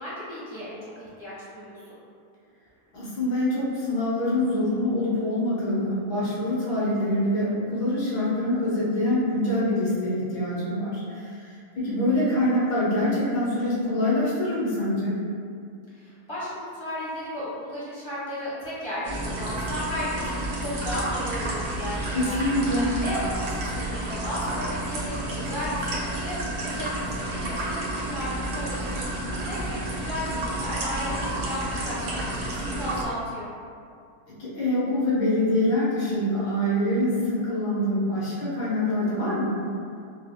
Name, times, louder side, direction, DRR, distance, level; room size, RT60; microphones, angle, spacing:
voice 1, 0.0-2.0 15.9-22.4 23.0-26.4 26.6-29.0 29.4-33.5, left 1 dB, 30° left, -10 dB, 0.5 m, -34 dB
voice 2, 2.9-15.2 22.1-22.9 34.4-39.6, left 1 dB, 85° left, -8 dB, 1.6 m, -25 dB
sound 1, 19.0-33.1, right 1 dB, 90° right, 1.2 m, -30 dB
4.5 x 2.1 x 2.2 m, 2.4 s
omnidirectional pair, 1.7 m